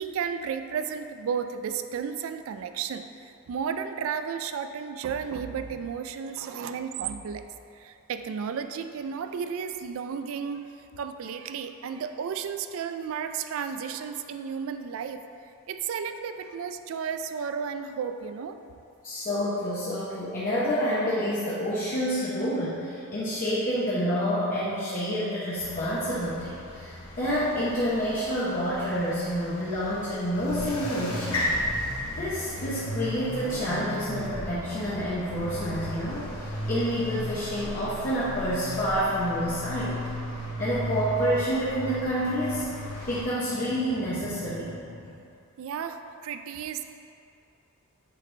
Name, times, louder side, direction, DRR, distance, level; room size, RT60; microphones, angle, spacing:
voice 1, 0.0-3.1 3.5-7.5 7.8-15.2 15.7-18.6 45.6-46.9, right 7 dB, 65° right, 8 dB, 0.3 m, -33 dB
voice 2, 19.0-31.5 31.8-31.9 32.2-40.0 40.6-42.7 43.1-45.0, equal, 40° left, -10 dB, 0.8 m, -28 dB
sound 1, 25.5-43.2, left 1 dB, 70° left, 1.0 m, -35 dB
8.2 x 4.1 x 3.3 m, 2.6 s
head